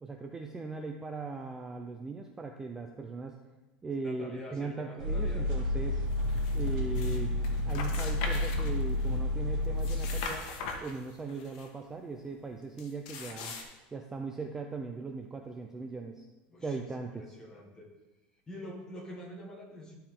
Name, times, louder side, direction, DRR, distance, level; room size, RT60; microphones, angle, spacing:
voice 1, 0.0-3.4 3.8-6.0 6.5-7.3 7.6-10.5 10.8-13.5 13.9-16.2 16.6-17.4, right 3 dB, 10° right, 3 dB, 0.4 m, -39 dB
voice 2, 4.0-5.5 16.5-16.9 17.1-17.9 18.5-20.0, left 1 dB, 15° left, 0 dB, 1.5 m, -46 dB
sound 1, 5.0-10.2, left 1 dB, 75° right, 1.9 m, -30 dB
sound 2, 6.2-7.2 7.4-9.2 9.6-11.7 12.8-13.6, left 4 dB, 65° left, 1.2 m, -40 dB
12.0 x 4.5 x 3.7 m, 1.1 s
supercardioid pair, 150°, 4 cm